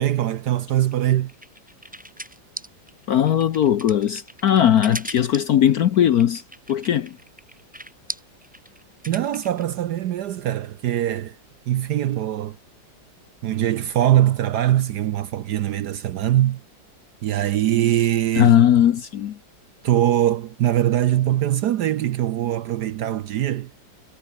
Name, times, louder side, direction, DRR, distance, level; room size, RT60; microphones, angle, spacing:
voice 1, 0.0-1.3 9.0-11.4 11.7-12.6 13.4-16.6 17.2-18.6 19.8-23.7, right 12 dB, 65° right, 1.1 m, -22 dB
sound 1, 0.9-9.6, right 1 dB, 5° right, 1.6 m, -38 dB
voice 2, 3.1-6.4 6.7-7.2 18.4-19.4, left 10 dB, 60° left, 1.2 m, -18 dB
omnidirectional pair, 2.1 m